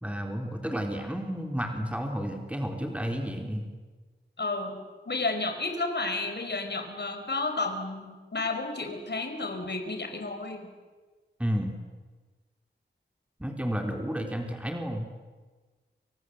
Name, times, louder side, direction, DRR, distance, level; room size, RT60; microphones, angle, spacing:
voice 1, 0.0-3.7 11.4-11.7 13.4-15.1, equal, 5° right, 3 dB, 3.8 m, -31 dB
voice 2, 4.4-10.7, left 3 dB, 65° left, 6 dB, 5.0 m, -32 dB
29.0 x 26.0 x 8.0 m, 1.3 s
wide cardioid pair, 85°, 19 cm